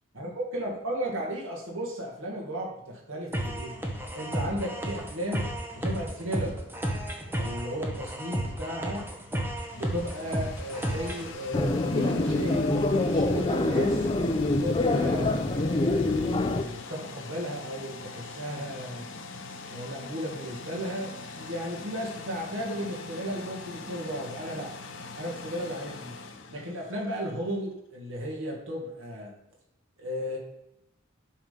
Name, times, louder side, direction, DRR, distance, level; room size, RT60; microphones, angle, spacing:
voice 1, 0.1-3.7 4.1-5.4 5.7-6.6 7.3-9.1 9.7-14.1 14.6-19.1 19.7-24.7 25.1-26.1 26.5-29.3 30.0-30.4, equal, 75° right, -2 dB, 2.0 m, -35 dB
sound 1, 3.3-11.3, right 1 dB, 10° right, 0.9 m, -33 dB
sound 2, 9.2-27.4, left 4 dB, 65° left, 0.8 m, -43 dB
sound 3, 11.5-16.6, left 2 dB, 25° left, 0.4 m, -25 dB
7.5 x 3.8 x 5.2 m, 0.86 s
head